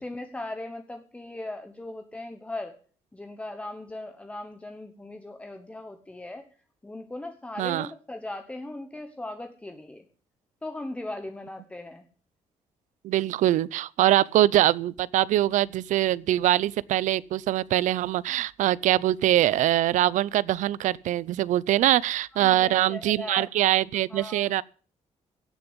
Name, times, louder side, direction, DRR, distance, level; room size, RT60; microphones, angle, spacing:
voice 1, 0.0-2.8 3.1-6.5 6.8-10.0 10.6-12.1 22.3-23.5 24.1-24.5, left 2 dB, 10° left, 1.1 m, -38 dB
voice 2, 7.6-7.9 13.0-24.6, right 13 dB, 80° right, 0.5 m, -23 dB
16.5 x 6.9 x 8.0 m
cardioid pair, 150°, 13 cm